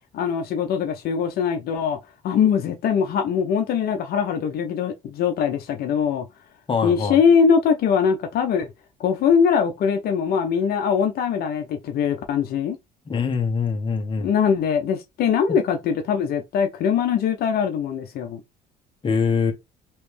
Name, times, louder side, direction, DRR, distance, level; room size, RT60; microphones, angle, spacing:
voice 1, 0.1-2.0 2.2-6.2 6.8-8.7 9.0-12.8 14.2-18.4, left 7 dB, 65° left, 0.7 m, -22 dB
voice 2, 6.7-7.2 13.1-14.3 19.0-19.5, left 5 dB, 30° left, 1.1 m, -23 dB
3.3 x 3.0 x 3.2 m
cardioid pair, 110°, 17 cm